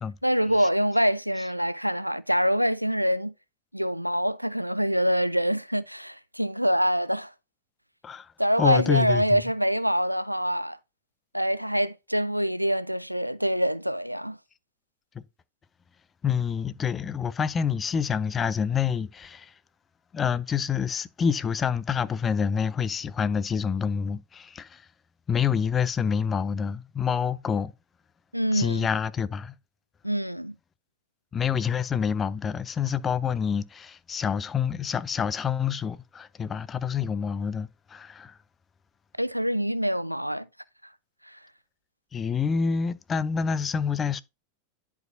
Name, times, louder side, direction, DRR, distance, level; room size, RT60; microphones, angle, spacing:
voice 1, 0.2-3.3 3.7-7.3 8.4-10.8 11.3-14.4 28.3-28.9 30.0-30.5 39.2-40.5, equal, 90° right, 0.3 m, -25 dB
voice 2, 8.6-9.4 15.1-15.2 16.2-19.5 20.1-24.9 25.3-27.7 28.5-29.5 31.3-38.4 42.1-44.2, left 7 dB, 20° left, 0.5 m, -27 dB
10.5 x 4.7 x 2.6 m
figure-of-eight pair, 90°, 0 cm